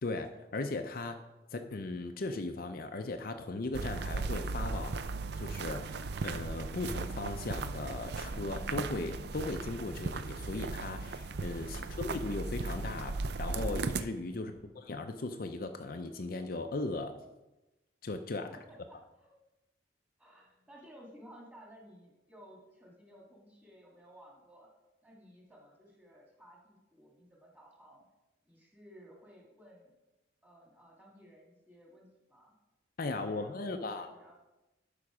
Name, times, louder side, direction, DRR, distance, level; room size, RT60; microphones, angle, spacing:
voice 1, 0.0-1.2 1.5-5.0 5.4-6.0 6.2-17.1 18.0-18.5 33.0-34.1, left 2 dB, 50° left, 6 dB, 0.5 m, -37 dB
sound 1, 3.7-14.0, right 3 dB, 60° right, 0.5 m, -37 dB
voice 2, 11.6-12.0 14.3-14.7 18.5-19.3 20.2-24.7 25.0-28.1 28.5-29.9 30.4-32.5 33.1-34.4, equal, 10° right, -2 dB, 1.9 m, -56 dB
11.5 x 5.2 x 4.9 m, 1.0 s
head